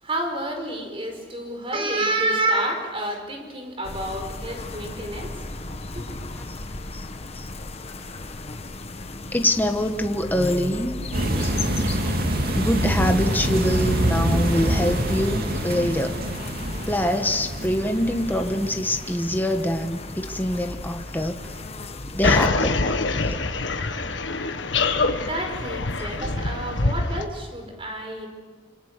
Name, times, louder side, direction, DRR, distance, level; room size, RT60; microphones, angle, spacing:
voice 1, 0.0-5.4 5.9-6.3 25.1-28.3, right 1 dB, 30° right, 4 dB, 5.0 m, -29 dB
sound 1, 3.8-22.5, left 2 dB, 35° left, 1.3 m, -35 dB
voice 2, 9.3-11.0 12.5-16.2 16.9-21.5 22.1-22.8, left 1 dB, 10° left, 5 dB, 1.3 m, -24 dB
sound 2, 11.1-20.2 20.7-20.9 21.2-21.3, right 1 dB, 55° right, 2.6 m, -26 dB
sound 3, 22.2-27.2, left 3 dB, 75° left, 1.7 m, -24 dB
27.0 x 25.5 x 6.7 m, 1.5 s
head